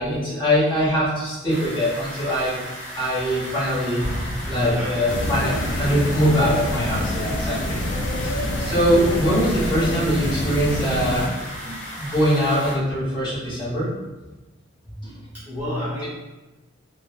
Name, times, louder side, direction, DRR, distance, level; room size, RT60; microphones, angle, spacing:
voice 1, 0.0-2.6 2.9-7.8 8.2-8.3 8.6-13.9 14.9-15.1, equal, 25° left, -9 dB, 1.0 m, -23 dB
sound 1, 1.5-12.7, equal, 5° left, 1.3 m, -36 dB
Explosion, 4.0-5.7, equal, 65° right, 0.7 m, -33 dB
voice 2, 4.5-5.6 15.3-16.1, left 1 dB, 10° right, -11 dB, 0.6 m, -32 dB
sound 2, 5.1-11.3, left 1 dB, 75° left, 0.4 m, -26 dB
3.0 x 2.0 x 2.3 m, 1.1 s
head